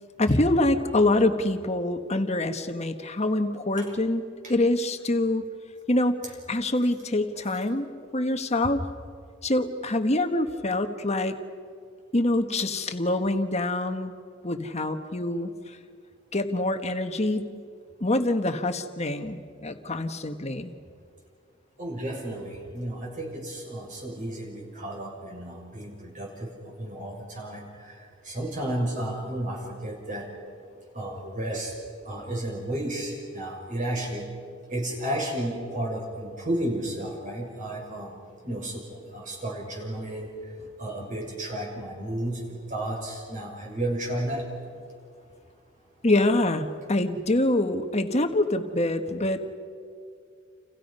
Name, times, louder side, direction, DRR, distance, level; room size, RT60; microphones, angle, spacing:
voice 1, 0.2-4.2 4.5-5.4 5.9-6.2 6.5-7.9 8.1-8.8 9.4-11.4 12.1-14.1 14.4-15.8 16.3-17.6 18.0-20.7 46.0-49.5, left 1 dB, 35° left, 7 dB, 1.4 m, -25 dB
voice 2, 21.8-27.9 28.2-30.3 30.9-31.7 32.0-34.3 34.7-38.2 38.4-40.3 40.8-44.4, right 1 dB, 40° right, -1 dB, 6.4 m, -32 dB
30.0 x 28.5 x 5.6 m, 2.3 s
head